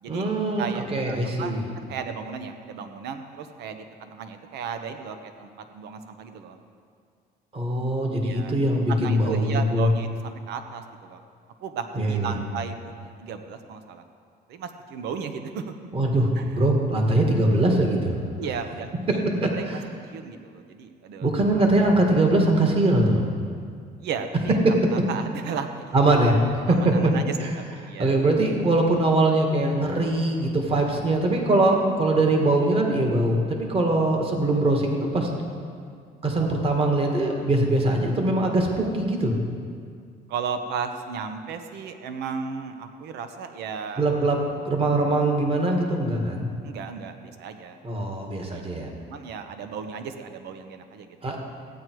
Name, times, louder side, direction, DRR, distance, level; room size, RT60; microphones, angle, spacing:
voice 1, 0.1-1.6 7.5-9.9 12.0-12.3 15.9-18.2 19.7-19.8 21.2-23.2 24.6-24.7 25.9-26.3 26.7-27.1 27.4-27.5 28.0-35.3 36.2-39.3 44.0-44.4 44.6-46.5 47.8-48.9 51.2-51.4, right 2 dB, 35° right, 1 dB, 1.9 m, -22 dB
voice 2, 0.6-6.6 8.2-8.5 8.9-11.2 11.6-14.0 14.5-15.7 16.4-16.6 18.4-19.7 20.1-21.3 24.0-24.6 25.1-26.2 26.7-28.2 40.3-44.1 46.6-47.8 48.5-48.6 49.1-51.3, right 6 dB, 80° right, 7 dB, 0.9 m, -35 dB
15.0 x 9.3 x 4.7 m, 2.2 s
cardioid pair, 110°, 17 cm